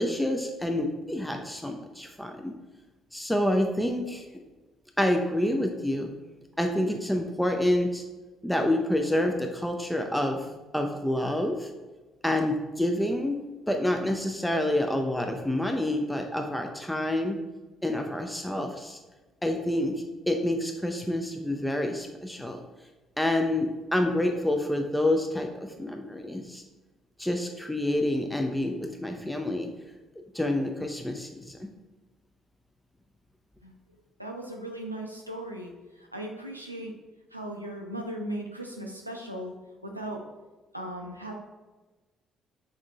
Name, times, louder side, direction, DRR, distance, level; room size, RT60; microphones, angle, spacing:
voice 1, 0.0-2.5 3.1-4.3 5.0-6.1 6.6-8.0 8.4-10.5 10.7-11.7 12.2-13.4 13.7-17.4 17.8-19.0 19.4-22.6 23.2-26.6 27.2-29.7 30.3-31.7, left 1 dB, 5° left, 3 dB, 0.5 m, -28 dB
voice 2, 34.2-36.9 37.3-40.2 40.7-41.3, right 1 dB, 90° right, 1 dB, 0.4 m, -37 dB
5.1 x 3.7 x 2.3 m, 1.2 s
figure-of-eight pair, 45°, 0 cm